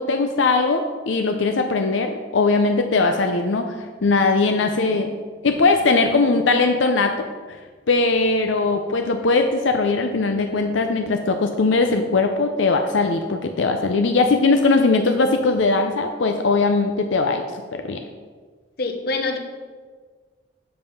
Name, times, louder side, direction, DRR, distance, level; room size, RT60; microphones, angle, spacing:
voice 1, 0.0-3.8 4.0-5.1 5.4-7.1 7.5-7.6 7.9-18.0, left 3 dB, 80° left, 5 dB, 0.6 m, -20 dB
voice 2, 18.8-19.4, left 3 dB, 55° left, 6 dB, 0.9 m, -25 dB
7.7 x 5.5 x 5.8 m, 1.5 s
head